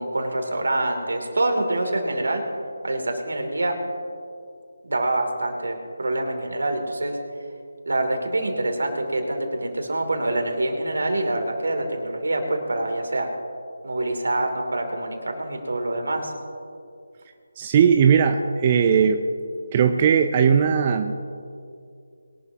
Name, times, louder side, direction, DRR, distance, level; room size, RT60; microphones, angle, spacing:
voice 1, 0.0-2.4 2.8-3.7 4.8-7.2 7.9-13.3 13.8-16.3, right 2 dB, 75° right, 3 dB, 3.0 m, -25 dB
voice 2, 17.6-19.2 19.7-21.1, right 7 dB, 25° right, 5 dB, 0.6 m, -18 dB
22.0 x 12.0 x 2.9 m, 2.4 s
figure-of-eight pair, 160°, 0 cm